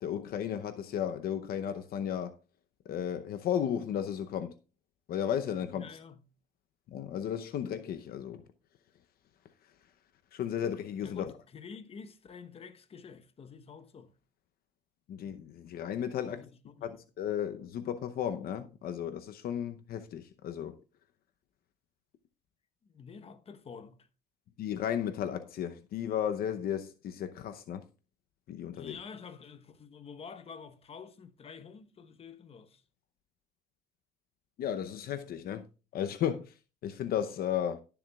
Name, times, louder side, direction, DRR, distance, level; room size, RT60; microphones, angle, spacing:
voice 1, 0.0-2.4 2.9-4.5 5.1-5.9 6.9-8.4 10.3-11.3 15.1-16.4 16.8-20.8 24.6-27.9 28.5-29.0 34.6-35.7 35.9-36.5 36.8-37.8, left 9 dB, 60° left, 0.7 m, -34 dB
voice 2, 5.7-6.2 11.0-14.1 16.2-17.0 22.9-24.1 28.7-32.8, left 6 dB, 35° left, 1.0 m, -48 dB
17.5 x 7.1 x 2.3 m
cardioid pair, 110°, 17 cm